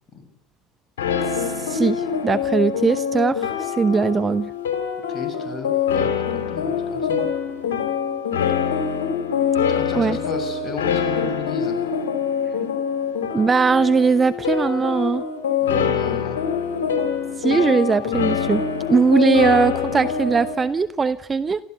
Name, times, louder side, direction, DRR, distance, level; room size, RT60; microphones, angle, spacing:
sound 1, 1.0-20.5, left 7 dB, 70° left, 4.0 m, -24 dB
voice 1, 1.3-4.5 9.9-10.2 13.3-15.2 17.4-18.6 18.9-21.6, right 5 dB, 25° right, 13 dB, 0.9 m, -20 dB
voice 2, 5.1-7.3 9.7-11.8 15.6-16.4, left 5 dB, 30° left, 6 dB, 7.0 m, -34 dB
28.5 x 14.5 x 9.4 m, 0.78 s
figure-of-eight pair, 70°, 0 cm